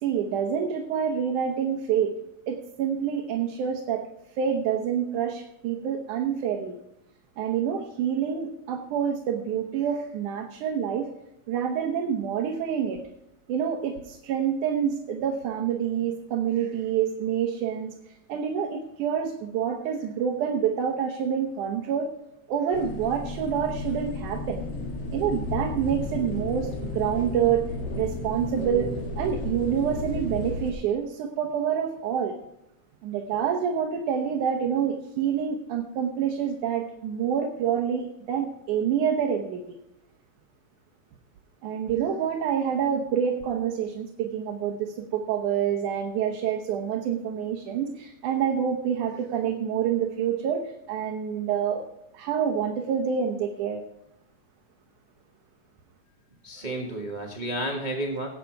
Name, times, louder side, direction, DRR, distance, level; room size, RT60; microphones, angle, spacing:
voice 1, 0.0-2.1 2.5-4.0 4.4-6.7 7.4-11.1 11.5-13.0 13.5-22.1 22.5-24.6 25.1-27.7 27.9-28.9 29.2-32.4 33.0-39.6 41.6-51.8 52.1-53.8, right 8 dB, 85° right, 2 dB, 2.6 m, -27 dB
sound 1, 22.7-30.7, left 2 dB, 55° left, 3.2 m, -33 dB
voice 2, 56.4-58.3, right 1 dB, 40° right, 0 dB, 0.6 m, -31 dB
18.0 x 8.3 x 4.6 m, 0.86 s
omnidirectional pair, 3.4 m